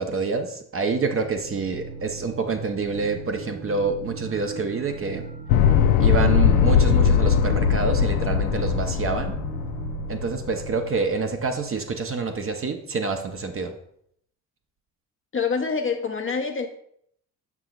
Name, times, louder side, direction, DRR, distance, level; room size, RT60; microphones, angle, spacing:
voice 1, 0.0-5.3 6.0-9.4 10.1-13.7, right 4 dB, 30° right, 5 dB, 0.8 m, -27 dB
sound 1, 1.4-11.3, right 4 dB, 75° right, 1.3 m, -37 dB
sound 2, 5.5-10.7, left 8 dB, 80° left, 0.5 m, -20 dB
voice 2, 15.3-16.7, left 5 dB, 30° left, 5 dB, 0.8 m, -26 dB
6.6 x 6.0 x 2.4 m, 0.70 s
hypercardioid pair, 50°, 44 cm